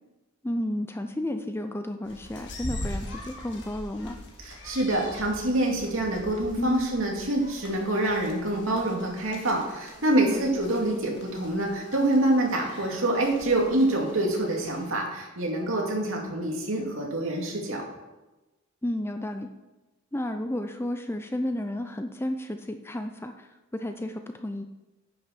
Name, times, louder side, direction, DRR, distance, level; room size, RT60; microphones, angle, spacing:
voice 1, 0.4-4.2 6.6-7.0 10.3-10.6 18.8-19.5 20.1-24.6, left 1 dB, 10° left, 7 dB, 0.4 m, -32 dB
sound 1, 2.0-14.9, left 1 dB, 55° left, 1.7 m, -42 dB
voice 2, 4.4-17.8, right 1 dB, 70° right, -1 dB, 2.4 m, -26 dB
9.8 x 6.4 x 5.9 m, 1.1 s
head